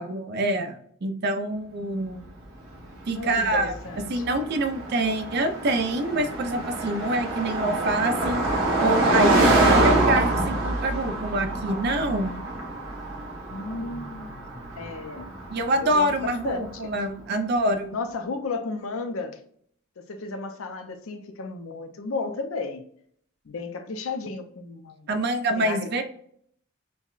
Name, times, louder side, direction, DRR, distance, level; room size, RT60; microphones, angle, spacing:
voice 1, 0.0-2.2 3.1-3.7 4.1-8.4 8.8-12.4 15.5-18.0 25.1-26.0, right 1 dB, 45° right, 7 dB, 0.4 m, -26 dB
Car passing by, 2.9-16.6, right 2 dB, 70° right, 1.1 m, -26 dB
voice 2, 3.1-4.4 13.5-14.3 14.8-15.3 15.8-16.9 17.9-19.4 20.0-22.8 23.5-25.1 25.6-25.8, left 4 dB, 70° left, 6 dB, 0.5 m, -33 dB
5.4 x 2.1 x 2.4 m, 0.63 s
head